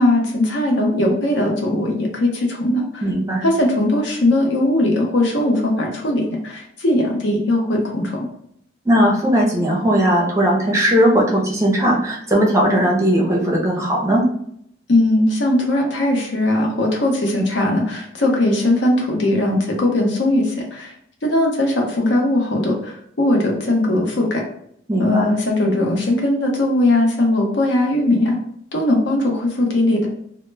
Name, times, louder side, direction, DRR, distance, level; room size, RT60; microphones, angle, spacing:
voice 1, 0.0-3.1 3.4-8.3 14.9-20.9 21.2-24.4 25.0-28.4 28.7-30.1, left 1 dB, 75° left, 1 dB, 0.7 m, -19 dB
voice 2, 3.0-3.4 8.8-14.2 24.9-25.3, equal, 15° right, -2 dB, 0.5 m, -17 dB
2.1 x 2.0 x 3.2 m, 0.69 s
head